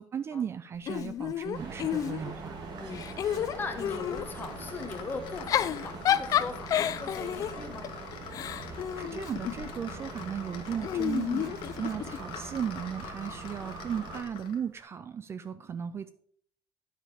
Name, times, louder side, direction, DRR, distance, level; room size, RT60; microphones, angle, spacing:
voice 1, 0.0-2.6 8.6-16.1, right 8 dB, 30° right, 12 dB, 0.3 m, -36 dB
Giggle / Chuckle chortle, 0.9-2.5 2.9-4.3 5.3-9.7 10.8-12.2, left 10 dB, 40° left, 0.4 m, -30 dB
sound 1, 1.5-14.2, right 4 dB, 50° right, 1.6 m, -43 dB
voice 2, 2.8-7.9 12.2-12.3, left 4 dB, 20° left, 6 dB, 1.1 m, -40 dB
sound 2, 3.5-14.7, left 8 dB, 75° left, 1.2 m, -45 dB
9.8 x 5.2 x 4.9 m, 0.63 s
cardioid pair, 160°, 9 cm